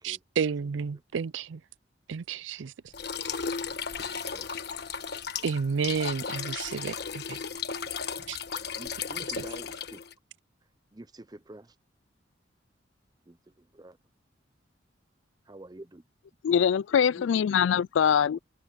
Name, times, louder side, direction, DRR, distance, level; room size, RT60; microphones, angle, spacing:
voice 1, 0.0-1.6 2.1-2.7 5.4-7.4 8.3-8.4, right 6 dB, 80° right, 0.4 m, -31 dB
sound 1, 2.9-10.1, left 6 dB, 60° left, 1.3 m, -35 dB
voice 2, 4.1-4.5 4.9-5.4 8.8-10.0 10.9-11.7 13.3-14.0 15.5-16.0, right 1 dB, 20° right, 0.7 m, -48 dB
voice 3, 16.4-18.4, left 8 dB, 80° left, 0.3 m, -23 dB
head